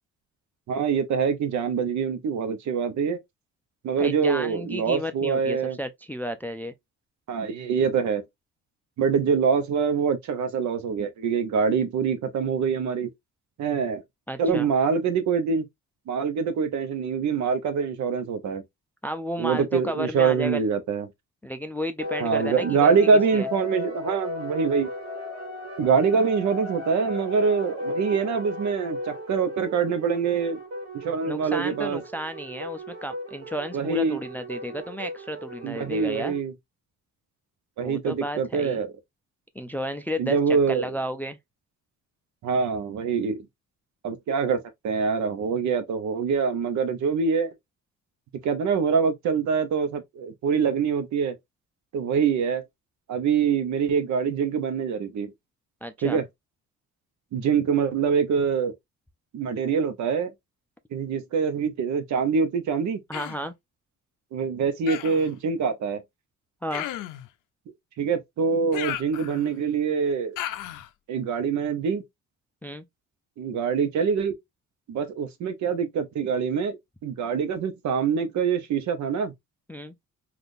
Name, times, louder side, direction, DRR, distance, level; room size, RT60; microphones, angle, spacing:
voice 1, 0.7-3.2 3.8-5.8 7.3-8.2 9.0-13.1 13.6-14.0 14.4-15.7 16.1-18.6 19.4-21.1 22.2-24.9 25.8-30.6 30.9-32.0 33.7-34.2 35.6-36.5 37.8-38.9 40.2-40.9 42.4-43.4 44.0-47.5 48.4-51.4 51.9-52.6 53.1-55.3 56.0-56.2 57.3-58.7 59.3-60.3 60.9-63.0 64.3-66.0 68.0-70.4 71.1-72.0 73.4-74.3 74.9-79.3, right 6 dB, 70° right, 0.8 m, -24 dB
voice 2, 4.0-6.7 14.3-14.7 19.0-20.7 21.4-23.0 23.3-23.5 31.2-36.4 37.8-38.8 39.6-40.4 40.7-41.4 55.8-56.2 63.1-63.5 66.6-66.9 72.6-72.8 79.7-79.9, equal, 5° left, 0.3 m, -32 dB
sound 1, 22.0-36.4, left 1 dB, 55° right, 1.4 m, -36 dB
Human voice, 63.1-63.5 64.9-65.3 66.7-67.3 68.7-69.6 70.4-70.9, left 13 dB, 90° left, 0.5 m, -34 dB
3.5 x 2.4 x 2.5 m
cardioid pair, 90°, 30 cm